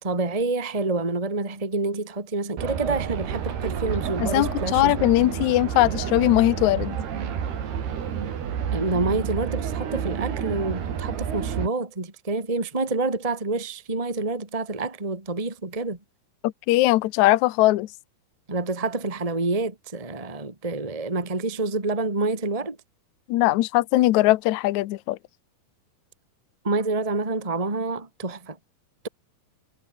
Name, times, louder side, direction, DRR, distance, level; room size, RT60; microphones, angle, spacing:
voice 1, 0.0-4.9 8.7-16.0 18.5-22.8 26.6-28.6, right 3 dB, 10° right, 2.3 m, -27 dB
sound 1, 2.6-11.7, right 8 dB, 75° right, 5.1 m, -29 dB
voice 2, 4.2-7.0 16.4-17.9 23.3-25.2, left 17 dB, 85° left, 1.6 m, -20 dB
omnidirectional pair, 4.6 m